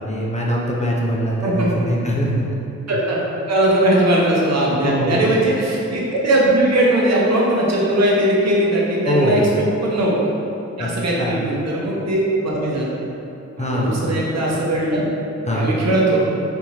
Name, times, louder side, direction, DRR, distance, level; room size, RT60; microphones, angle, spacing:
voice 1, 0.0-2.4 4.8-5.3 9.0-9.5 10.8-10.9 11.2-11.4 13.6-14.1 15.5-15.7, equal, 25° left, -4 dB, 0.4 m, -22 dB
voice 2, 2.9-3.2 3.5-9.4 9.8-10.2 10.8-13.0 13.6-15.1 15.5-16.2, right 1 dB, 60° right, -4 dB, 0.7 m, -19 dB
3.5 x 2.9 x 2.7 m, 2.9 s
wide cardioid pair, 100°, 30 cm